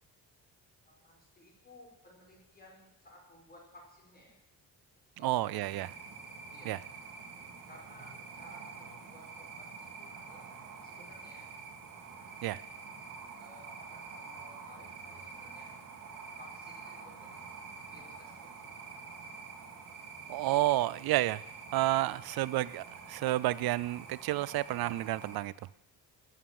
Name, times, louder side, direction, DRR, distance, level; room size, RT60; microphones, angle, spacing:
voice 1, 0.9-4.4 5.2-5.7 6.5-6.8 7.7-9.7 10.0-10.5 10.8-11.5 13.4-15.7 16.4-17.4 17.9-18.6, left 1 dB, 25° left, -2 dB, 5.0 m, -57 dB
voice 2, 5.2-5.9 6.7-6.8 12.4-12.6 20.3-21.4 21.7-25.5, right 16 dB, 75° right, 20 dB, 0.5 m, -30 dB
sound 1, 5.6-25.4, right 5 dB, 55° right, 2.7 m, -47 dB
13.0 x 9.5 x 8.8 m, 0.84 s
cardioid pair, 175°, 37 cm